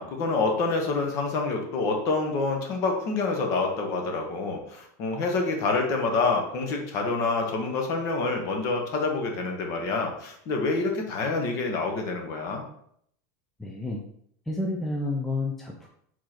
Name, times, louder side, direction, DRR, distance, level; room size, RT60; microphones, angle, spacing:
voice 1, 0.0-12.7, left 3 dB, 35° left, 2 dB, 0.9 m, -27 dB
voice 2, 13.6-14.0 14.5-15.9, left 2 dB, 5° left, -1 dB, 0.3 m, -30 dB
4.9 x 3.7 x 2.9 m, 0.68 s
supercardioid pair, 170°, 9 cm